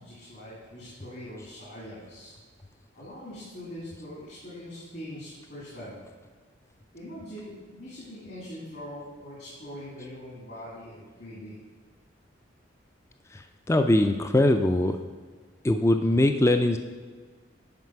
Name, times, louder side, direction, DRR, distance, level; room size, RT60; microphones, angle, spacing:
voice 1, 0.0-2.3 2.9-6.0 6.9-11.6, equal, 60° left, -8 dB, 2.5 m, -42 dB
voice 2, 13.7-15.0 15.6-16.8, left 1 dB, 15° left, 7 dB, 0.3 m, -21 dB
9.5 x 4.7 x 5.8 m, 1.5 s
head